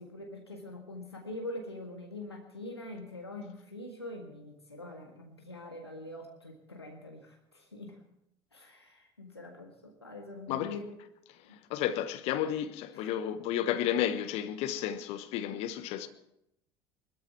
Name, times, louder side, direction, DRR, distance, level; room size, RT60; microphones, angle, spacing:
voice 1, 0.0-7.9 8.5-10.9 11.5-11.6 12.9-13.2, left 2 dB, 85° left, 1.7 m, -44 dB
voice 2, 11.7-16.1, left 10 dB, 50° left, 1.2 m, -32 dB
20.5 x 13.5 x 4.5 m
figure-of-eight pair, 65°, 13 cm